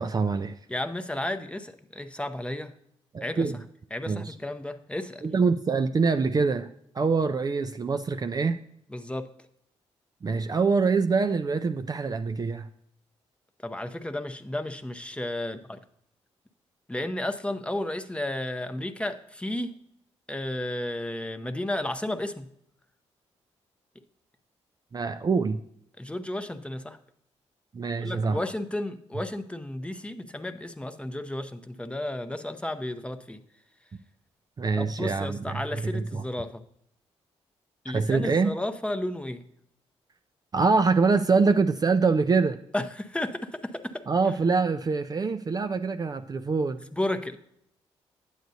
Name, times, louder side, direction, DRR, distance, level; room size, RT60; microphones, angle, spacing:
voice 1, 0.0-0.5 3.1-3.6 4.1-4.3 5.2-6.7 6.9-8.6 10.2-12.7 24.9-25.6 27.7-28.4 34.6-36.2 37.9-38.5 40.5-42.6 44.1-46.8, right 4 dB, 30° right, 7 dB, 0.4 m, -25 dB
voice 2, 0.7-2.7 3.2-3.5 3.9-5.2 8.9-9.3 13.6-15.8 16.9-19.7 20.3-22.5 26.0-27.0 28.0-33.4 34.7-36.6 37.8-39.4 42.7-44.0 46.9-47.4, left 1 dB, 10° left, 7 dB, 0.6 m, -33 dB
9.2 x 7.9 x 2.7 m, 0.72 s
supercardioid pair, 60°, 12 cm